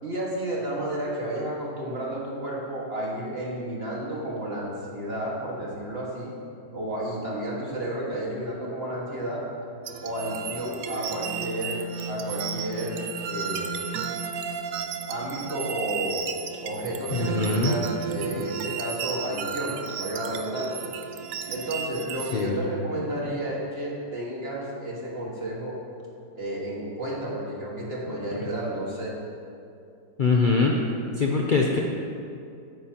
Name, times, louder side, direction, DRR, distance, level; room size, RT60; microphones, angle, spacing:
voice 1, 0.0-6.3 6.7-9.5 10.0-13.8 15.1-16.2 16.6-20.9 21.5-25.8 26.4-29.2, right 1 dB, 35° right, -4 dB, 1.9 m, -32 dB
sound 1, 9.9-22.5, right 6 dB, 65° right, 0.9 m, -33 dB
voice 2, 17.1-17.8 18.2-18.4 22.3-22.6 30.2-30.8 31.2-31.8, left 4 dB, 75° left, -1 dB, 0.4 m, -23 dB
13.5 x 9.2 x 2.9 m, 2.5 s
omnidirectional pair, 1.8 m